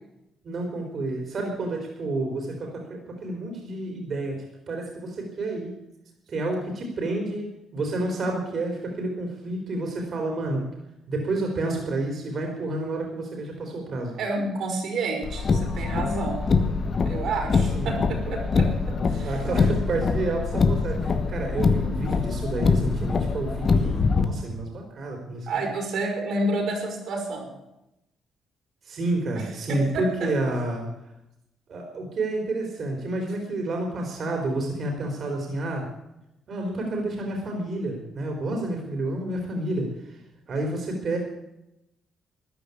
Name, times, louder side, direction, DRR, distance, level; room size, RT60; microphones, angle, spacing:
voice 1, 0.4-4.4 4.7-5.7 6.3-10.6 11.1-14.2 17.7-17.9 19.2-25.5 28.8-30.9 31.7-35.8 36.5-39.9 40.5-41.2, right 2 dB, 50° right, 2 dB, 4.0 m, -29 dB
voice 2, 14.1-16.5 17.0-19.3 25.5-27.5 29.3-30.3, right 2 dB, 70° right, 3 dB, 4.9 m, -30 dB
Car, 15.2-24.2, left 4 dB, 45° left, 1.4 m, -24 dB
14.0 x 10.5 x 8.5 m, 0.87 s
cardioid pair, 90°, 0 cm